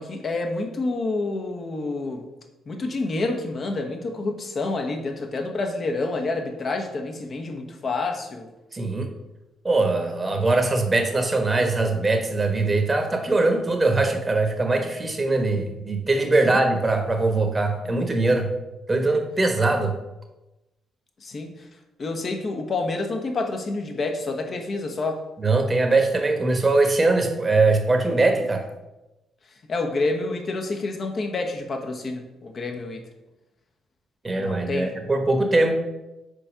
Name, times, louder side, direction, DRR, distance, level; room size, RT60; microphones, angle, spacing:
voice 1, 0.0-2.2 2.7-8.5 16.4-16.6 21.2-21.7 22.0-25.2 29.7-33.0 34.4-34.9, left 3 dB, 50° left, 4 dB, 1.1 m, -28 dB
voice 2, 8.7-9.1 9.6-18.5 18.9-19.9 25.4-28.6 34.2-35.7, right 2 dB, 25° right, 4 dB, 1.1 m, -21 dB
5.3 x 4.4 x 4.9 m, 0.99 s
hypercardioid pair, 50°, 0 cm